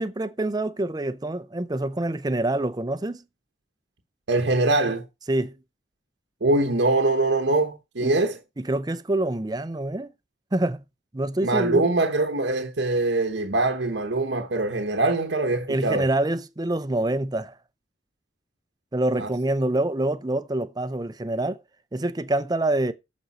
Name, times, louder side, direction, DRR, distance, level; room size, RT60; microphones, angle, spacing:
voice 1, 0.0-3.2 5.3-5.5 8.0-8.2 8.6-10.1 10.5-10.8 11.1-11.8 15.7-17.6 18.9-21.6 21.9-22.9, right 1 dB, 20° right, 0.6 m, -26 dB
voice 2, 4.3-5.0 6.4-8.4 11.4-16.0 19.2-19.3, right 2 dB, 75° right, 1.1 m, -23 dB
14.0 x 5.3 x 4.2 m
head